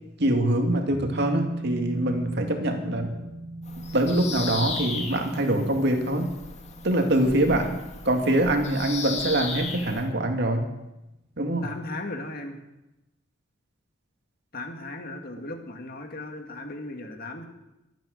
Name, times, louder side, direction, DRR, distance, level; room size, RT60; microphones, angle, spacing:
voice 1, 0.2-3.2 3.9-6.3 6.8-7.8 8.0-10.6 11.4-11.7, right 1 dB, 60° right, 4 dB, 2.2 m, -24 dB
sound 1, 0.9-10.0 10.3-10.4, right 2 dB, 40° right, 4.3 m, -39 dB
Bird vocalization bird call bird song, 3.6-10.1, left 4 dB, 35° left, 2.0 m, -36 dB
voice 2, 11.6-12.6 14.5-17.4, left 2 dB, 50° left, 4 dB, 2.1 m, -37 dB
23.5 x 9.2 x 6.6 m, 0.96 s
head